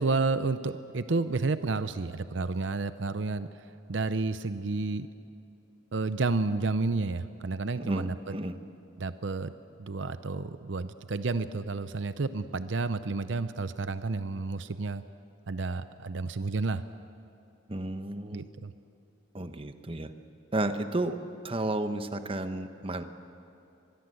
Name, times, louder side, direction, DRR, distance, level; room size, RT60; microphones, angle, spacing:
voice 1, 0.0-3.5 3.9-5.1 5.9-8.4 9.0-9.5 9.8-15.0 15.5-16.8 18.3-18.7, right 3 dB, 70° right, 12 dB, 0.7 m, -30 dB
voice 2, 7.8-8.6 17.7-18.4 19.3-20.1 20.5-21.2 21.4-23.0, right 2 dB, 30° right, 8 dB, 1.0 m, -32 dB
25.5 x 21.0 x 7.9 m, 2.7 s
head